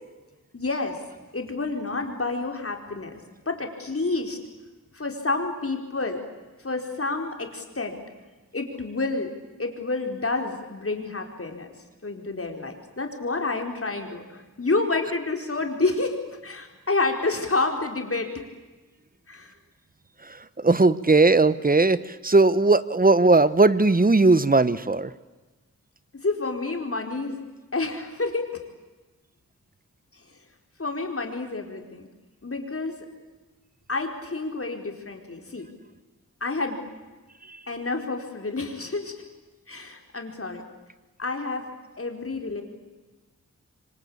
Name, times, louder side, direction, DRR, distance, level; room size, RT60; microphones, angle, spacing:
voice 1, 0.5-1.0 1.3-3.1 3.5-4.4 4.9-6.2 6.6-8.0 8.5-9.3 9.6-11.7 12.0-16.2 16.4-18.4 19.3-19.5 26.2-27.3 27.7-28.5 30.8-32.1 32.4-33.0 33.9-35.7 36.4-36.8 37.7-39.1 39.7-40.6 41.2-41.7 42.0-42.6, left 3 dB, 45° left, 4 dB, 4.3 m, -29 dB
voice 2, 20.6-22.0 22.2-25.1, right 3 dB, 25° right, 16 dB, 1.1 m, -18 dB
26.5 x 25.0 x 8.7 m, 1.2 s
wide cardioid pair, 75°, 32 cm